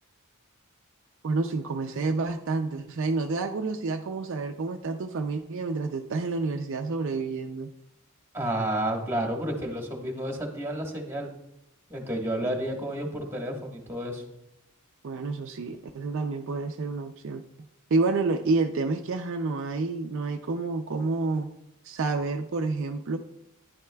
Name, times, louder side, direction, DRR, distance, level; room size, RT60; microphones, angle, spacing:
voice 1, 1.2-7.7 12.4-12.5 15.0-17.4 17.9-21.5 21.8-23.2, right 3 dB, 55° right, 5 dB, 0.4 m, -29 dB
voice 2, 8.3-11.3 11.9-14.2, right 1 dB, 10° right, 1 dB, 1.3 m, -31 dB
10.5 x 10.5 x 2.2 m, 0.85 s
head